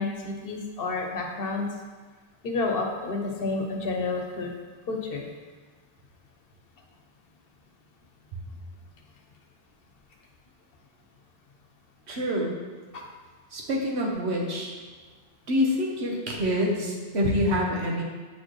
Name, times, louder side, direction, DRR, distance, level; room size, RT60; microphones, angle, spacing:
voice 1, 0.0-1.7 2.4-4.5 4.9-5.3 12.9-13.0, left 3 dB, 60° left, 1 dB, 1.0 m, -30 dB
voice 2, 12.1-12.6 13.5-14.7 15.5-18.0, left 1 dB, 80° right, -1 dB, 1.3 m, -26 dB
7.8 x 4.2 x 3.2 m, 1.4 s
omnidirectional pair, 1.1 m